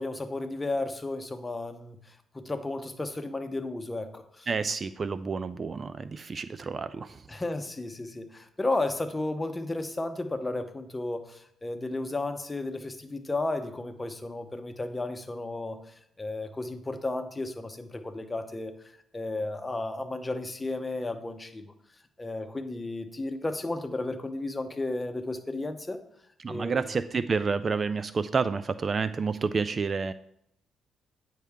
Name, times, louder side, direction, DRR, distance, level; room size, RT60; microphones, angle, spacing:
voice 1, 0.0-4.5 7.3-18.8 19.1-21.7 22.2-26.0 26.5-26.9, left 2 dB, 20° left, 7 dB, 0.9 m, -33 dB
voice 2, 4.5-7.2 26.4-30.1, right 5 dB, 40° right, 14 dB, 0.3 m, -29 dB
9.4 x 5.7 x 3.6 m, 0.73 s
cardioid pair, 90°, 0 cm